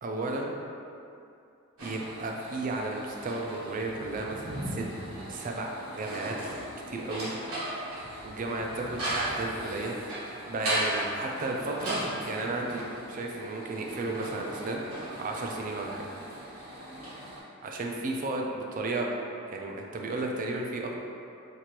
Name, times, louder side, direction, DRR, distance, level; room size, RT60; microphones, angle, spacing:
voice 1, 0.0-0.5 1.8-4.9 5.3-6.4 6.9-7.3 8.2-10.1 10.5-12.0 12.3-16.1 17.6-19.1 19.5-20.9, right 2 dB, 40° right, 0 dB, 0.4 m, -33 dB
sound 1, 1.8-17.4, right 1 dB, 80° right, 1.1 m, -37 dB
4.4 x 2.5 x 2.9 m, 2.6 s
head